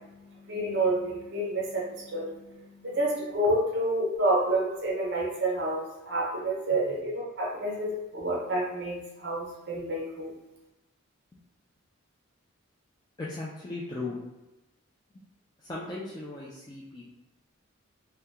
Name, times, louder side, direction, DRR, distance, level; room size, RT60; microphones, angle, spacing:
voice 1, 0.0-10.3, right 1 dB, 50° right, -3 dB, 0.8 m, -29 dB
voice 2, 6.7-7.0 11.3-11.4 13.2-14.2 15.6-17.1, left 2 dB, 20° left, -6 dB, 0.3 m, -38 dB
2.7 x 2.2 x 3.4 m, 0.98 s
head